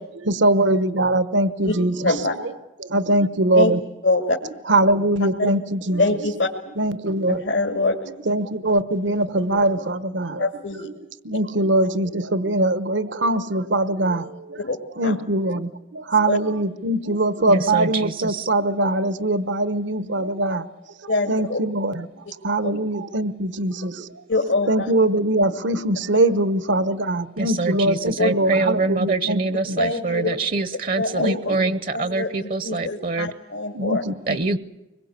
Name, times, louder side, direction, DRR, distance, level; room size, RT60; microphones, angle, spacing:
voice 1, 0.2-2.5 2.8-3.8 4.7-6.0 6.8-7.4 8.3-10.5 10.8-10.9 11.2-14.6 15.0-20.6 21.0-22.1 22.4-24.1 24.7-29.4 29.7-29.8 31.2-31.7 33.7-34.4, right 1 dB, 80° right, 13 dB, 1.1 m, -22 dB
voice 2, 2.0-2.3 3.5-3.7 4.0-4.4 5.4-5.5 6.0-6.5 7.3-8.0 10.4-10.9 14.6-14.8 15.0-15.1 16.3-16.4 21.1-21.6 22.6-22.8 24.3-24.9 28.2-28.3 29.8-30.3 31.0-31.5 31.9-34.0, left 3 dB, 80° left, 2 dB, 2.3 m, -24 dB
voice 3, 17.5-18.5 27.4-33.3 34.3-34.6, right 3 dB, 45° right, 14 dB, 0.8 m, -25 dB
25.5 x 22.0 x 8.1 m, 1.0 s
head